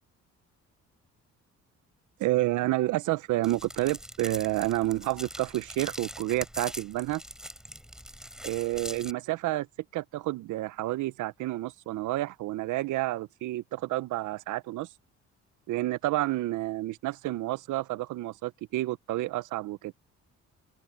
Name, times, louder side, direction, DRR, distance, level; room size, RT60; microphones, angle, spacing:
voice 1, 2.2-7.2 8.4-9.7 9.9-14.9 15.7-19.9, right 16 dB, 80° right, 0.6 m, -30 dB
sound 1, 3.4-9.1, equal, ahead, 3.3 m, -42 dB
open air
cardioid pair, 90°, 30 cm